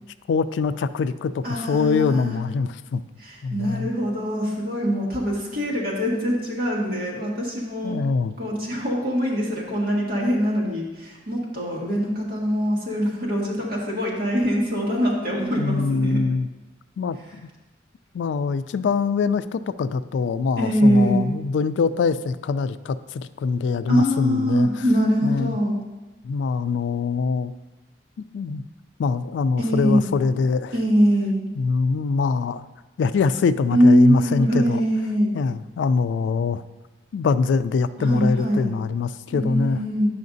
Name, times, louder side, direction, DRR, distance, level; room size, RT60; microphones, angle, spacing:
voice 1, 0.3-3.0 3.4-3.9 7.8-8.3 15.6-16.5 17.0-17.2 18.1-24.8 25.2-25.6 26.2-27.5 28.3-28.6 29.0-30.7 31.6-32.7 33.0-34.8 35.3-36.6 37.1-39.8, left 5 dB, 85° left, 14 dB, 0.3 m, -23 dB
voice 2, 1.4-2.3 3.2-8.0 8.4-16.2 20.6-21.2 23.9-25.8 29.6-30.1 30.7-31.4 33.7-35.3 38.0-38.7 39.3-40.1, equal, 60° right, -4 dB, 1.7 m, -22 dB
9.4 x 5.7 x 2.6 m, 1.1 s
head